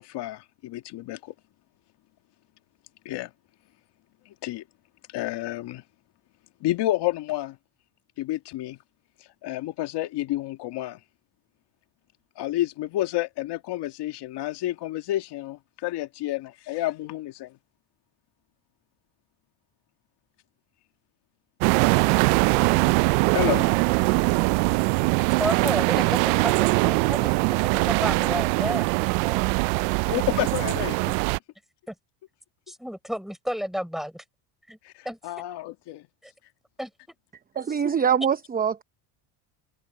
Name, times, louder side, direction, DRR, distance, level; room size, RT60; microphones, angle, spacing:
voice 1, 0.0-1.3 3.1-3.3 4.3-4.6 5.1-5.8 6.6-7.6 8.2-8.8 9.4-11.0 12.4-17.5 23.3-23.7 24.7-24.8 30.1-31.2 34.8-36.0, left 15 dB, 55° left, 1.9 m, -30 dB
sound 1, 21.6-31.4, right 28 dB, 75° right, 0.6 m, -22 dB
voice 2, 25.4-26.5 26.8-28.9 29.2-29.4 31.9-32.0 32.7-34.2 34.7-34.8 35.0-35.2 36.2-36.3 36.8-36.9, equal, ahead, 4.9 m, -31 dB
voice 3, 37.6-38.8, right 7 dB, 20° right, 0.8 m, -23 dB
supercardioid pair, 115°, 48 cm